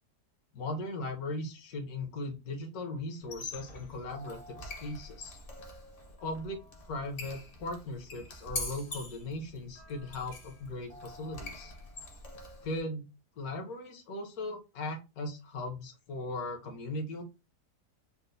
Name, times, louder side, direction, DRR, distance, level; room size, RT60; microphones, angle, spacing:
voice 1, 0.5-5.4 6.2-6.6 6.8-11.7 12.6-13.1 13.4-17.2, left 2 dB, 70° left, 4 dB, 1.3 m, -38 dB
Squeak, 3.2-12.8, left 2 dB, 45° left, 0.8 m, -44 dB
4.2 x 2.1 x 2.6 m, 0.27 s
omnidirectional pair, 1.7 m